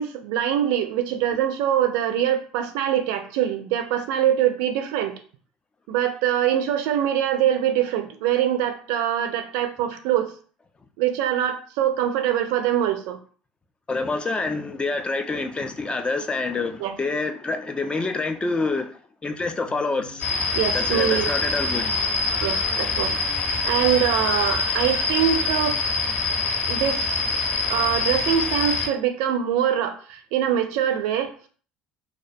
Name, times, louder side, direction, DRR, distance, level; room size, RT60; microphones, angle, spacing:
voice 1, 0.0-5.2 5.9-10.3 11.0-13.2 16.8-17.0 20.5-21.3 22.4-23.2 23.7-26.0 26.7-27.2 27.7-31.3, right 10 dB, 70° right, 0.4 m, -23 dB
voice 2, 13.9-20.3 20.7-21.9, left 3 dB, 20° left, 0.4 m, -27 dB
Singing, 19.6-25.7, left 1 dB, 85° left, 0.7 m, -41 dB
sound 1, 20.2-28.9, left 4 dB, 45° left, 0.8 m, -25 dB
2.3 x 2.1 x 2.5 m
hypercardioid pair, 65°, 4 cm